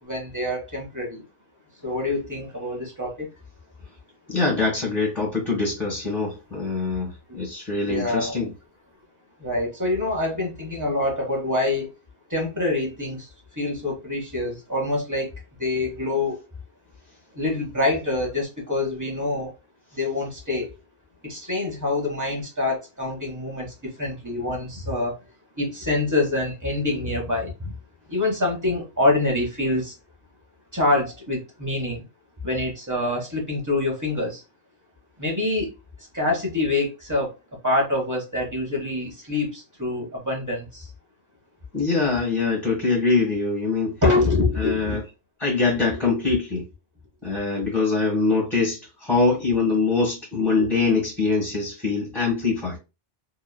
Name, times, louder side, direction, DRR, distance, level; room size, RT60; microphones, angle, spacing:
voice 1, 0.0-1.3 1.8-3.3 7.9-8.4 9.4-11.9 12.3-13.3 13.6-15.3 15.6-16.4 17.3-19.5 19.9-20.7 21.2-25.2 25.5-27.7 28.1-29.9 30.7-32.0 32.4-34.4 35.2-35.7 36.1-37.3 37.6-40.9 44.0-45.0 45.7-46.4 47.5-47.7 50.4-50.5, left 2 dB, 20° right, 0.8 m, -26 dB
voice 2, 4.3-8.5 41.7-44.0 44.6-45.0 45.4-46.6 47.2-52.8, left 3 dB, ahead, 1.1 m, -23 dB
3.0 x 2.2 x 2.2 m
omnidirectional pair, 1.1 m